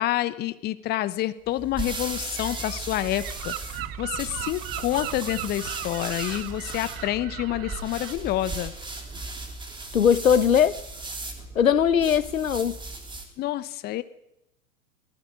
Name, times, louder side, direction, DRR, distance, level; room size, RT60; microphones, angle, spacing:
voice 1, 0.0-8.7 13.4-14.0, left 14 dB, 25° left, 0.9 m, -28 dB
sound 1, 1.4-13.4, right 2 dB, 10° right, 3.2 m, -37 dB
Gull seagull, 2.4-8.1, right 16 dB, 45° right, 1.0 m, -37 dB
voice 2, 9.9-10.8 11.5-12.8, left 8 dB, 70° left, 1.0 m, -20 dB
26.5 x 19.5 x 5.1 m
figure-of-eight pair, 95°, 42 cm